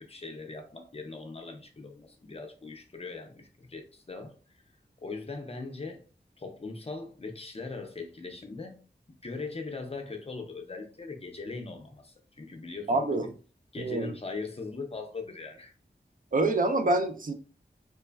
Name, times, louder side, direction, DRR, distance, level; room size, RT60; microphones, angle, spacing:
voice 1, 0.0-4.3 5.0-6.0 6.4-8.8 9.1-13.3 13.7-15.7, left 3 dB, 35° left, 0.5 m, -40 dB
voice 2, 12.9-13.3 13.8-14.1 16.3-17.3, right 2 dB, 50° right, 0.4 m, -26 dB
3.2 x 2.0 x 2.2 m
wide cardioid pair, 70°, 18 cm